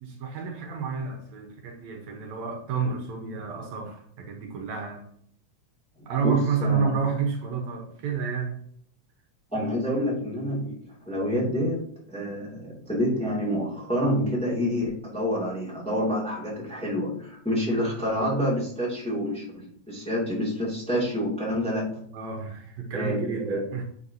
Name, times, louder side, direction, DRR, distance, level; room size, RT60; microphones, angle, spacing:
voice 1, 0.0-5.1 6.1-8.6 22.1-23.8, right 5 dB, 70° right, 3 dB, 2.3 m, -30 dB
voice 2, 6.0-7.0 9.5-22.0 22.9-23.7, equal, ahead, -5 dB, 2.0 m, -28 dB
9.7 x 5.2 x 2.8 m, 0.63 s
omnidirectional pair, 3.4 m